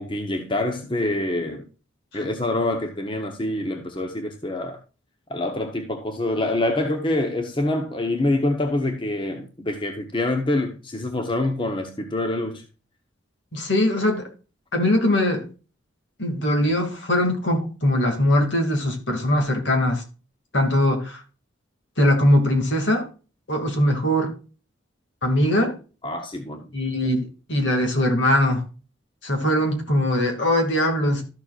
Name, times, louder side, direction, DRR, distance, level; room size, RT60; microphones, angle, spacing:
voice 1, 0.0-1.7 2.1-4.8 5.3-12.6 26.0-26.7, left 1 dB, 25° left, 1.0 m, -26 dB
voice 2, 13.5-14.3 14.7-15.5 16.2-20.0 20.5-21.2 22.0-23.1 23.5-24.3 25.2-25.7 26.7-28.6 29.2-31.2, left 1 dB, 65° left, 2.4 m, -21 dB
13.0 x 6.9 x 2.5 m
head